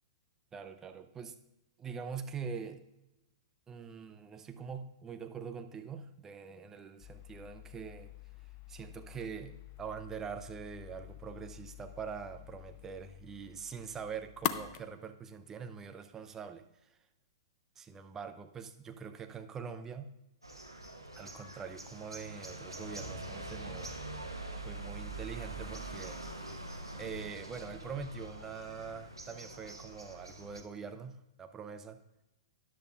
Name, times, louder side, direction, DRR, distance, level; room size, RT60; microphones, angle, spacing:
voice 1, 0.5-1.3 1.8-2.8 3.7-8.1 8.7-16.6 17.8-20.1 21.2-23.9 24.6-26.2 26.9-32.0, right 6 dB, 15° right, 7 dB, 0.6 m, -44 dB
sound 1, 7.0-14.8, left 13 dB, 35° left, 0.5 m, -44 dB
sound 2, 20.4-30.6, right 2 dB, 85° right, 1.1 m, -44 dB
13.0 x 10.0 x 2.4 m, 0.93 s
figure-of-eight pair, 110°, 2 cm